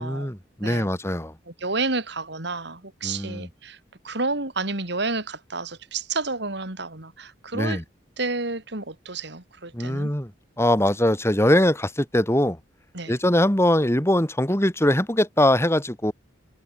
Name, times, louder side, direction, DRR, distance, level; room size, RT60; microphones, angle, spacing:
voice 1, 0.0-1.3 3.0-3.5 7.5-7.8 9.7-10.3 10.6-12.6 13.1-16.1, left 1 dB, 15° left, 3.2 m, -22 dB
voice 2, 1.5-3.8 4.0-7.8 8.2-10.1 12.9-13.2, right 3 dB, 65° right, 4.0 m, -30 dB
head